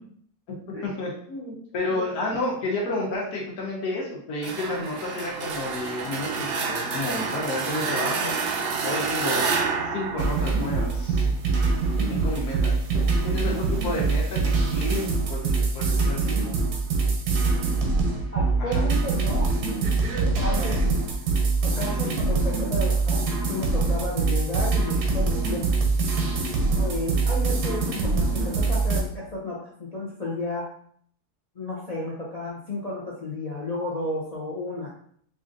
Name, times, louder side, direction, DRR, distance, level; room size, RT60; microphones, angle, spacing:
voice 1, 0.8-8.3 8.8-9.5 9.9-11.3 12.0-12.8 13.2-15.0 15.3-16.5 17.3-17.9 18.6-19.6 21.7-22.2, left 2 dB, 80° left, -3 dB, 1.4 m, -31 dB
sound 1, 4.4-11.1, right 4 dB, 75° right, 0.5 m, -29 dB
sound 2, 10.2-29.0, right 3 dB, 90° right, 1.3 m, -24 dB
voice 2, 18.3-19.5 20.4-20.9 21.6-25.7 26.8-30.7 31.6-34.9, left 2 dB, 50° left, -5 dB, 0.4 m, -32 dB
4.9 x 2.5 x 2.5 m, 0.62 s
omnidirectional pair, 1.6 m